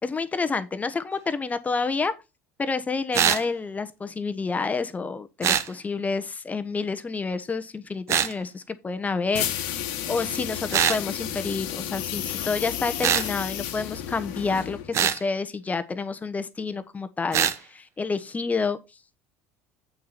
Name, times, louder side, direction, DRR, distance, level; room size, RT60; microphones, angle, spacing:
voice 1, 0.0-2.1 2.6-9.7 10.1-18.8, left 4 dB, 25° left, 1.1 m, -29 dB
sound 1, 3.1-3.4 5.4-5.7 8.1-8.3 10.7-11.0 13.0-13.3 14.9-15.2 17.3-17.6, right 9 dB, 50° right, 1.0 m, -22 dB
sound 2, 9.3-15.0, left 11 dB, 70° left, 1.4 m, -32 dB
8.2 x 6.7 x 4.2 m
hypercardioid pair, 70°, 6 cm